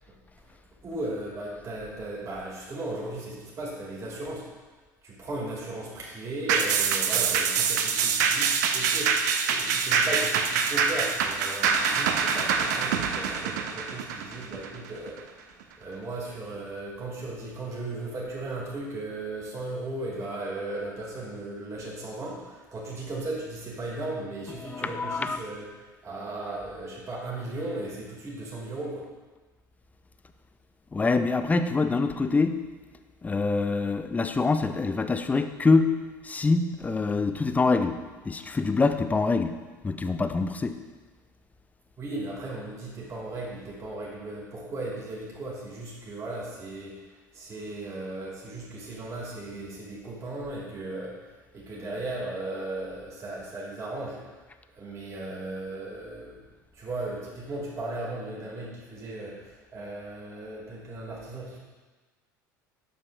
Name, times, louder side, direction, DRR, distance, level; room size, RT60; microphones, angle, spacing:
voice 1, 0.8-4.5 5.0-15.4 15.8-29.1 42.0-54.2 54.7-56.4 56.7-61.6, right 2 dB, 30° right, -5 dB, 2.0 m, -36 dB
sound 1, 6.5-15.2 15.6-15.7, right 6 dB, 65° right, 0.6 m, -25 dB
voice 2, 24.6-25.4 30.9-32.6 33.2-36.0 36.2-38.0 38.2-39.6 39.8-40.8, left 3 dB, 15° left, 9 dB, 0.5 m, -25 dB
9.6 x 6.6 x 2.4 m, 1.3 s
figure-of-eight pair, 65°, 10 cm